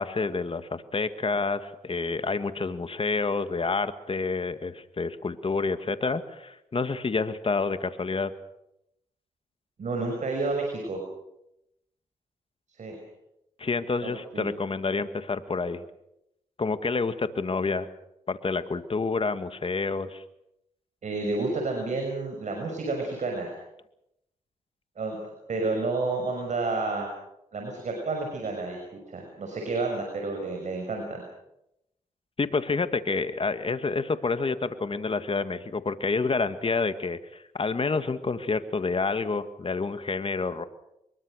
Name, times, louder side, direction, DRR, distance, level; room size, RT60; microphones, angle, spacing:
voice 1, 0.0-8.3 13.6-15.8 16.6-17.9 18.3-20.2 32.4-40.6, left 4 dB, 45° left, 10 dB, 2.0 m, -28 dB
voice 2, 9.8-11.0 12.8-13.0 14.0-14.5 21.0-23.5 25.0-27.1 27.5-28.8 29.1-31.2, right 3 dB, 65° right, 2 dB, 6.0 m, -30 dB
23.5 x 22.0 x 6.5 m, 0.83 s
cardioid pair, 50°, 13 cm